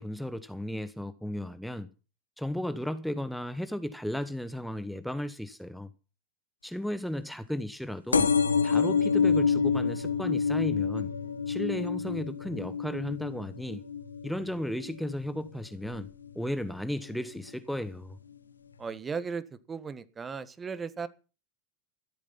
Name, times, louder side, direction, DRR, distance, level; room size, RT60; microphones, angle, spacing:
voice 1, 0.0-1.9 2.4-5.9 6.6-8.3 8.6-11.1 11.5-13.8 14.2-16.1 16.3-18.2, left 1 dB, ahead, 1.1 m, -34 dB
sound 1, 8.1-15.4 15.8-16.3 17.2-17.3 17.5-17.6 17.8-17.9, left 6 dB, 85° left, 1.3 m, -28 dB
voice 2, 18.8-21.1, right 5 dB, 20° right, 1.5 m, -36 dB
14.5 x 12.0 x 5.7 m
hypercardioid pair, 90°, 0 cm